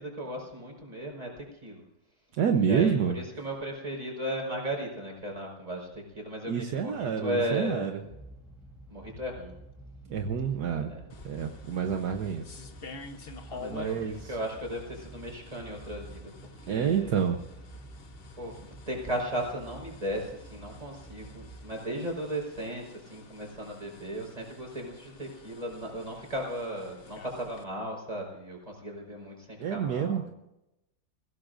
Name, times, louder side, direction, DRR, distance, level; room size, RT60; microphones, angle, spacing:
voice 1, 0.0-1.8 2.6-8.1 8.9-9.6 10.8-11.0 13.5-17.2 18.4-30.2, right 1 dB, 20° right, 0 dB, 4.8 m, -36 dB
voice 2, 2.4-3.2 6.5-7.9 10.1-10.9 11.2-12.5 13.7-14.4 16.7-17.4 21.9-22.1 29.6-30.3, right 7 dB, 70° right, 5 dB, 1.5 m, -28 dB
sound 1, 8.1-21.7, right 2 dB, ahead, 2.5 m, -49 dB
sound 2, 11.1-27.6, left 4 dB, 40° left, 1.1 m, -49 dB
23.0 x 16.5 x 2.6 m, 0.89 s
omnidirectional pair, 1.8 m